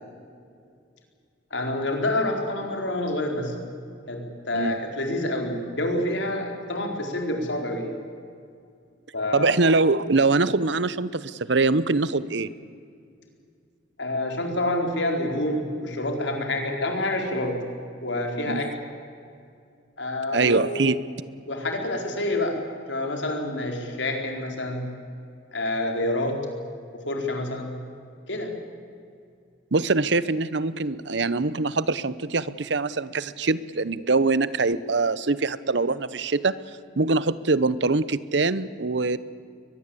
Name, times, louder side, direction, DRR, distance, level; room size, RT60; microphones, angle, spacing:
voice 1, 1.5-3.5 4.1-7.9 9.1-9.6 14.0-17.6 18.0-18.7 20.0-20.9 21.5-22.6 22.9-24.9 25.5-26.4 26.9-27.7 28.3-28.5, left 1 dB, 75° left, 3 dB, 4.2 m, -27 dB
voice 2, 9.3-12.5 18.5-18.7 20.3-21.0 29.7-36.5 37.0-39.2, right 3 dB, 65° right, 17 dB, 0.8 m, -23 dB
23.0 x 20.5 x 8.5 m, 2.3 s
head